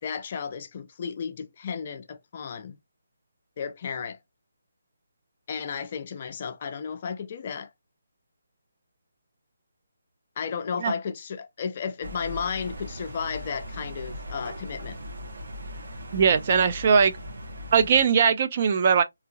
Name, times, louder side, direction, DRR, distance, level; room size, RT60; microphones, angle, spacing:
voice 1, 0.0-2.8 3.6-4.2 5.5-7.7 10.4-15.0, left 6 dB, 35° left, 0.5 m, -33 dB
sound 1, 12.0-18.0, equal, 70° right, 1.1 m, -39 dB
voice 2, 16.1-17.1 17.7-19.0, right 6 dB, 35° right, 0.3 m, -20 dB
2.8 x 2.7 x 2.6 m
hypercardioid pair, 165°, 0 cm